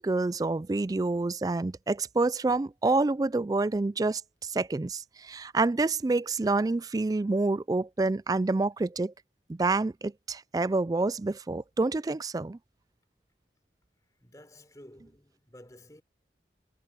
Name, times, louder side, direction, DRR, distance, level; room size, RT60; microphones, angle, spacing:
voice 1, 0.0-9.1 9.5-12.6, right 3 dB, 20° right, 0.3 m, -28 dB
voice 2, 14.2-16.0, left 1 dB, 20° left, 4.2 m, -52 dB
head